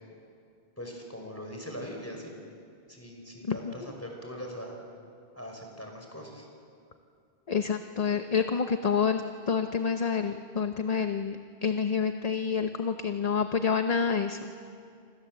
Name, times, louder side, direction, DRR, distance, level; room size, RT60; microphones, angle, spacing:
voice 1, 0.8-2.4 2.9-4.8 5.4-6.5, equal, 15° left, 1 dB, 5.3 m, -41 dB
voice 2, 7.5-14.5, left 6 dB, 40° left, 7 dB, 1.0 m, -28 dB
28.5 x 26.0 x 7.7 m, 2.4 s
omnidirectional pair, 1.0 m